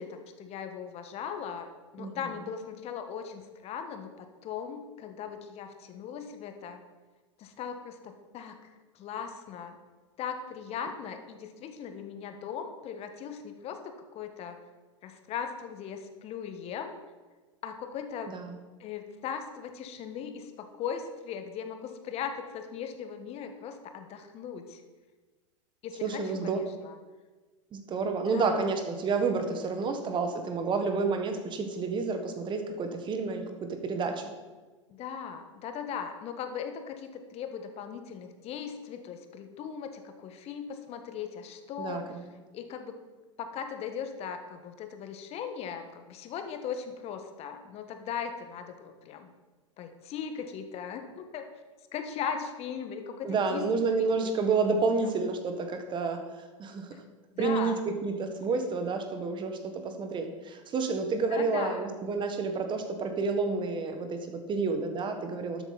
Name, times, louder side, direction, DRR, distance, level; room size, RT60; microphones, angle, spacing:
voice 1, 0.0-1.7 1.9-6.8 7.4-9.7 10.2-14.6 15.0-17.0 17.6-18.3 18.8-24.8 25.8-27.0 28.2-28.7 34.9-42.2 42.5-43.0 43.4-49.3 49.8-51.5 51.9-53.7 54.0-54.3 57.3-57.8 61.3-61.9, left 7 dB, 40° left, 6 dB, 1.4 m, -39 dB
voice 2, 26.0-26.6 27.7-33.4 33.7-34.3 41.8-42.2 53.2-56.2 56.6-56.9 57.4-57.7 58.0-65.6, right 4 dB, 30° right, 6 dB, 1.5 m, -30 dB
12.5 x 8.1 x 4.1 m, 1.3 s
hypercardioid pair, 90°, 17 cm